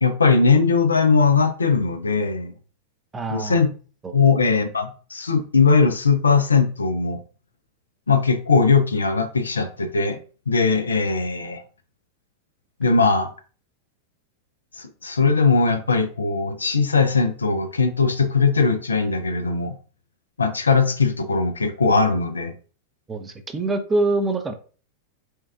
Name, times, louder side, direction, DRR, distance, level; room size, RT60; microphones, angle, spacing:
voice 1, 0.0-2.5 3.3-3.7 4.1-7.2 8.1-10.2 10.5-11.6 12.8-13.3 14.8-19.8 20.4-22.5, left 4 dB, 75° left, 0.5 m, -19 dB
voice 2, 3.1-3.6 4.0-4.2 23.1-24.5, right 2 dB, 15° right, 0.6 m, -24 dB
4.4 x 2.3 x 3.5 m
figure-of-eight pair, 90°, 0 cm